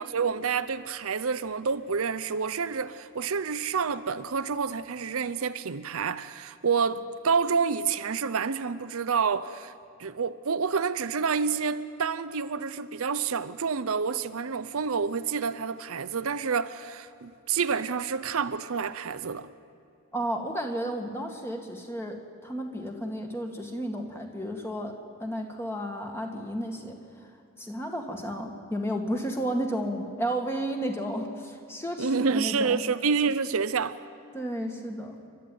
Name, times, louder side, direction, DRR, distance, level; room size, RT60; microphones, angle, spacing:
voice 1, 0.0-9.7 10.0-19.5 32.0-34.0, right 5 dB, 75° right, 0.7 m, -28 dB
voice 2, 20.1-27.0 27.6-32.8 34.3-35.2, equal, 10° left, 1.9 m, -32 dB
29.5 x 12.5 x 9.3 m
head